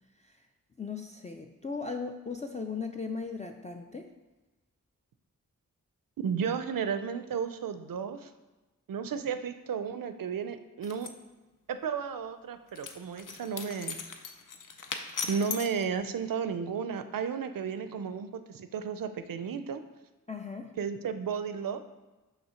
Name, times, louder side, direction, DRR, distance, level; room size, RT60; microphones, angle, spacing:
voice 1, 0.8-4.1 20.3-20.7, left 4 dB, 20° left, 3 dB, 0.4 m, -37 dB
voice 2, 6.2-8.3 8.9-11.1 11.7-14.0 15.3-19.8 20.8-21.8, right 6 dB, 75° right, 10 dB, 0.5 m, -33 dB
sound 1, 10.8-11.1 12.8-15.8, left 5 dB, 65° left, 0.6 m, -38 dB
5.7 x 3.2 x 5.6 m, 1.1 s
wide cardioid pair, 80°, 34 cm